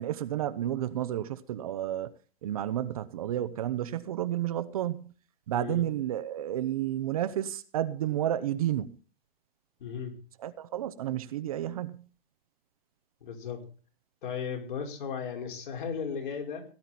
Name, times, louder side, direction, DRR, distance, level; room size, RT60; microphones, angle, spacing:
voice 1, 0.0-2.1 2.4-5.1 5.5-9.0 10.4-12.1, right 12 dB, 40° right, 0.8 m, -31 dB
voice 2, 5.5-5.8 9.8-10.1 13.2-13.6 14.2-16.6, left 6 dB, 55° left, 4.9 m, -35 dB
17.5 x 11.0 x 4.2 m
hypercardioid pair, 165°, 30 cm